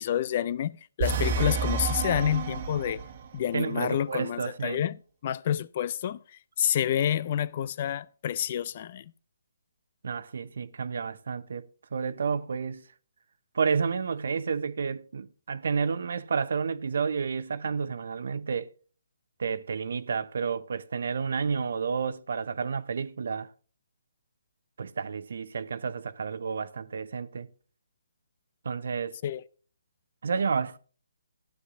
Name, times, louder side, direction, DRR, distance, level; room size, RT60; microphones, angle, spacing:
voice 1, 0.0-3.0 3.3-5.0 5.2-6.2 6.6-9.0 29.2-29.4, left 10 dB, 40° left, 0.4 m, -28 dB
sound 1, 1.0-3.3, right 4 dB, 45° right, 1.3 m, -29 dB
voice 2, 3.5-4.8 10.0-11.7 11.9-12.8 13.5-18.7 19.4-23.5 24.8-27.5 28.6-29.2 30.2-30.8, right 5 dB, 65° right, 0.8 m, -30 dB
15.0 x 9.5 x 2.5 m
figure-of-eight pair, 145°, 0 cm